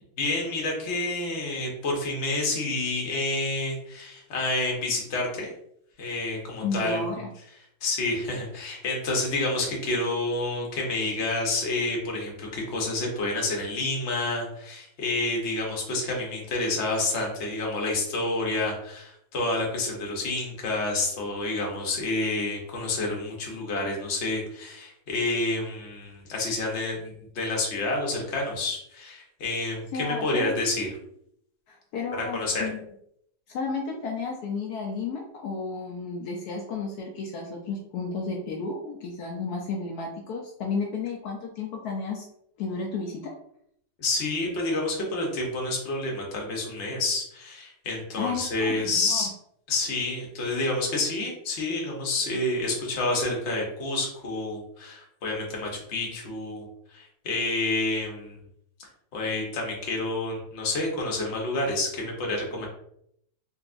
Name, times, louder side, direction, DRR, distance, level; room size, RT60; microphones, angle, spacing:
voice 1, 0.2-5.5 6.0-7.1 7.8-30.9 32.2-32.6 44.0-49.3 49.7-56.6 56.9-58.4 59.1-62.7, left 2 dB, 50° left, -1 dB, 1.0 m, -29 dB
voice 2, 6.6-7.3 29.9-30.6 31.7-32.8 33.5-42.3 42.6-43.3 48.1-49.3, left 4 dB, 75° left, 0 dB, 1.0 m, -32 dB
3.8 x 2.5 x 2.5 m, 0.72 s
omnidirectional pair, 1.7 m